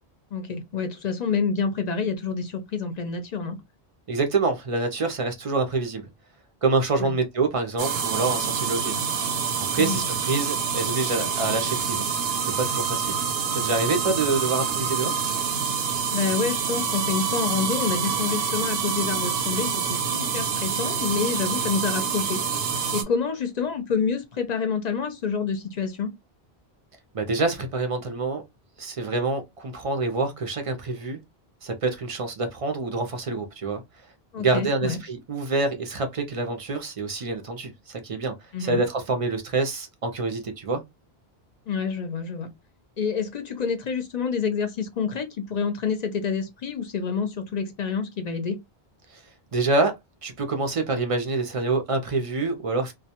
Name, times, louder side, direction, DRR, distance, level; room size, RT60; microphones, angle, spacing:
voice 1, 0.3-3.6 7.0-7.1 9.8-10.0 16.1-22.4 22.9-26.1 34.3-35.0 38.5-38.8 41.7-42.5 43.0-48.6, left 5 dB, 50° left, 0.6 m, -28 dB
voice 2, 4.1-6.0 6.6-9.0 9.7-12.0 12.4-13.2 13.5-15.1 27.1-28.4 28.8-31.2 31.6-33.8 34.4-38.3 38.6-40.8 49.1-49.2 49.5-50.0 50.2-52.9, right 3 dB, 45° right, 0.5 m, -26 dB
sound 1, 7.8-23.0, right 6 dB, 75° right, 0.8 m, -27 dB
2.2 x 2.1 x 2.8 m
omnidirectional pair, 1.0 m